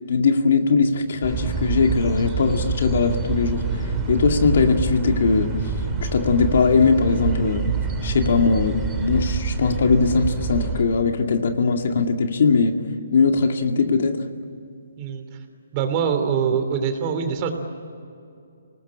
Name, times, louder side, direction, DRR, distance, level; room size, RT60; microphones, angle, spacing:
voice 1, 0.1-5.5 6.0-7.6 8.0-12.7 13.1-14.2, left 4 dB, 60° left, 5 dB, 2.3 m, -20 dB
sound 1, 1.2-10.8, right 4 dB, 10° right, 3.3 m, -26 dB
voice 2, 15.7-17.5, right 7 dB, 30° right, 6 dB, 3.1 m, -23 dB
27.5 x 19.0 x 8.8 m, 2.5 s
hypercardioid pair, 155°, 0 cm